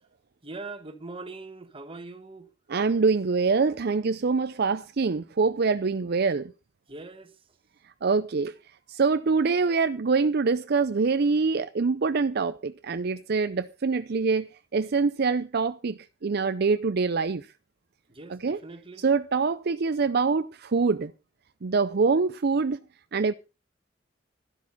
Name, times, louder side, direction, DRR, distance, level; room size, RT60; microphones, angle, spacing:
voice 1, 0.4-2.5 6.9-7.3 18.1-19.0, right 3 dB, 30° right, 1.6 m, -41 dB
voice 2, 2.7-6.5 8.0-8.5 8.9-17.5 18.3-18.6 19.0-21.1 21.6-22.8 23.1-23.3, right 4 dB, 60° right, 0.5 m, -25 dB
13.0 x 11.5 x 4.1 m
head